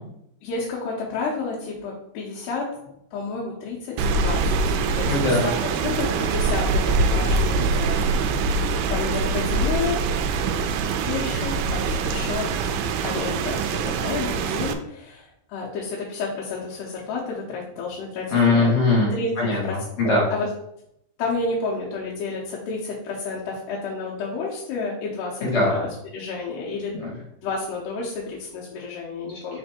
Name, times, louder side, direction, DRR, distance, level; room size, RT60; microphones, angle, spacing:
voice 1, 0.4-5.5 5.8-8.1 8.9-10.1 11.0-18.7 19.1-19.3 19.6-19.8 20.3-20.5 21.2-26.9 27.4-29.6, left 4 dB, 80° left, -5 dB, 3.1 m, -31 dB
Rain, 4.0-14.7, right 4 dB, 80° right, 2.4 m, -24 dB
voice 2, 5.1-5.4 18.3-20.3 25.4-25.7 27.0-27.1, left 3 dB, 50° left, -5 dB, 2.1 m, -21 dB
6.4 x 3.3 x 4.4 m, 0.78 s
omnidirectional pair, 4.7 m